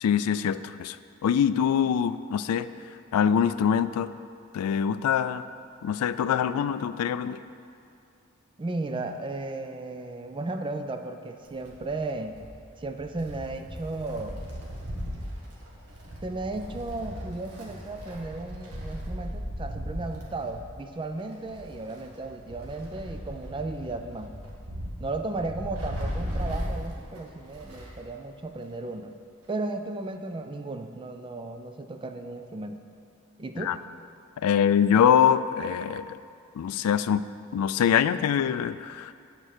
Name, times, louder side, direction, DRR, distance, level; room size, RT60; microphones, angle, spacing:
voice 1, 0.0-1.0 1.2-2.7 3.1-4.1 4.5-5.4 5.8-7.4 33.6-33.8 34.4-36.2 36.6-37.2 37.5-39.1, left 8 dB, 80° left, 14 dB, 0.3 m, -24 dB
voice 2, 8.6-12.4 12.8-14.4 16.2-24.4 25.0-29.1 29.5-32.8 33.4-33.8, right 2 dB, 20° right, 7 dB, 0.4 m, -35 dB
Wind, 11.4-28.0 28.3-28.4 29.4-29.5, equal, 80° right, 1.6 m, -37 dB
9.9 x 4.5 x 6.5 m, 2.4 s
head